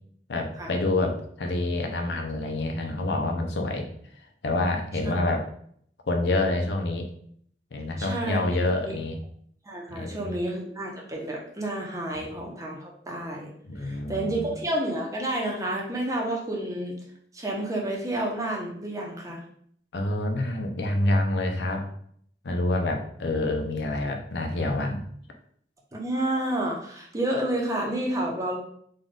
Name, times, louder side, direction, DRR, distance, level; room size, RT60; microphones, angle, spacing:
voice 1, 0.3-3.9 4.4-5.5 6.1-7.1 7.7-9.2 9.9-10.3 12.1-12.3 13.6-14.5 19.9-21.9 22.4-25.0, left 2 dB, 70° left, 3 dB, 0.6 m, -27 dB
voice 2, 8.0-8.6 8.8-9.0 9.6-13.5 13.8-17.0 17.3-19.4 25.9-28.6, right 1 dB, 20° right, -2 dB, 0.8 m, -30 dB
3.9 x 2.4 x 3.6 m, 0.63 s
head